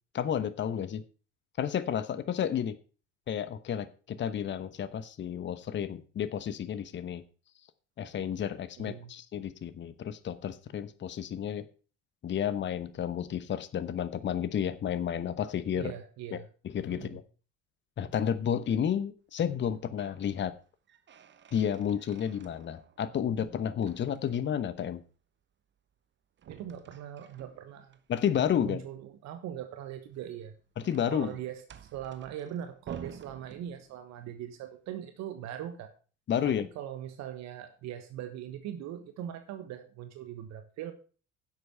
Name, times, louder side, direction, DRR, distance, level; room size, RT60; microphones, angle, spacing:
voice 1, 0.1-1.0 1.6-2.8 3.3-7.2 8.0-11.7 12.2-15.9 16.3-16.4 16.6-17.2 18.0-20.6 21.5-25.0 28.1-28.8 30.8-31.3 36.3-36.7, left 9 dB, 30° left, 1.0 m, -31 dB
voice 2, 8.8-9.1 15.7-16.5 16.9-17.2 26.5-28.0 28.6-30.5 31.1-36.0 36.4-40.9, right 10 dB, 50° right, 1.3 m, -41 dB
sound 1, 19.6-20.3 20.6-23.1 23.4-24.6 26.4-28.0 30.0-34.2, right 8 dB, 30° right, 1.1 m, -51 dB
10.5 x 7.9 x 5.6 m
figure-of-eight pair, 60°, 36 cm